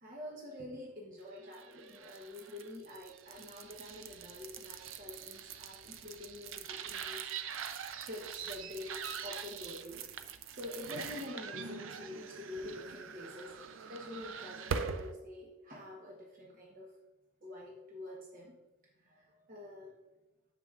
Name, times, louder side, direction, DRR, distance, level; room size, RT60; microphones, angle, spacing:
voice 1, 0.0-7.3 8.0-9.0 9.2-10.1 10.5-13.5 13.9-16.9 17.4-18.6 19.0-19.9, left 1 dB, 45° right, -3 dB, 0.9 m, -47 dB
sound 1, 1.5-15.1, right 6 dB, 80° right, 0.5 m, -43 dB
8.9 x 6.7 x 2.4 m, 1.1 s
head